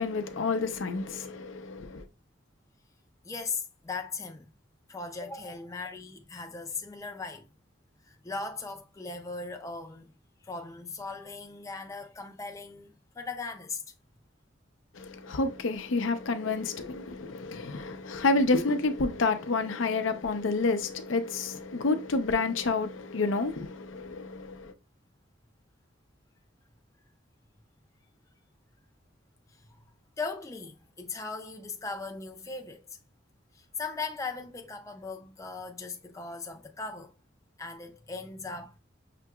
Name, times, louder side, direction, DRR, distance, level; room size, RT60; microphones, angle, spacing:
voice 1, 0.0-2.1 14.9-24.7, left 3 dB, 80° left, 0.6 m, -29 dB
voice 2, 3.2-4.4 4.9-7.5 8.0-10.1 10.4-13.8 29.5-29.8 30.2-33.0 33.5-37.1 37.6-38.8, left 4 dB, 15° left, 0.4 m, -38 dB
5.8 x 2.8 x 2.3 m
head